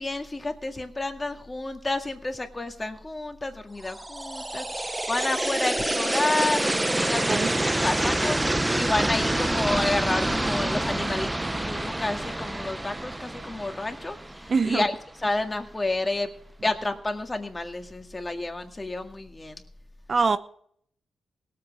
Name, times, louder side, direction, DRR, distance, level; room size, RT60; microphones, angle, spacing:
voice 1, 0.0-14.9 15.2-16.3 16.6-19.6, left 2 dB, 25° left, 1.9 m, -30 dB
sound 1, 3.9-14.9, right 1 dB, 15° right, 0.9 m, -27 dB
voice 2, 14.5-14.8 20.1-20.4, right 4 dB, 50° right, 0.7 m, -23 dB
17.5 x 7.7 x 7.1 m
supercardioid pair, 55°, 0 cm